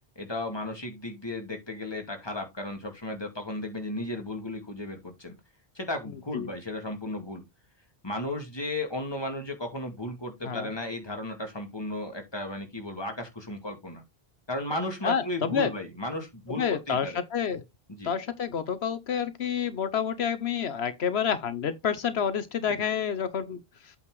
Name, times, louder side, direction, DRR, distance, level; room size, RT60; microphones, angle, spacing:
voice 1, 0.2-5.4 5.7-7.4 8.0-14.0 14.5-17.2 17.9-18.1, left 1 dB, 25° left, 2.3 m, -35 dB
voice 2, 15.0-15.7 16.5-17.6 18.0-23.6, left 7 dB, 85° left, 1.2 m, -28 dB
8.5 x 4.2 x 4.8 m
omnidirectional pair, 1.1 m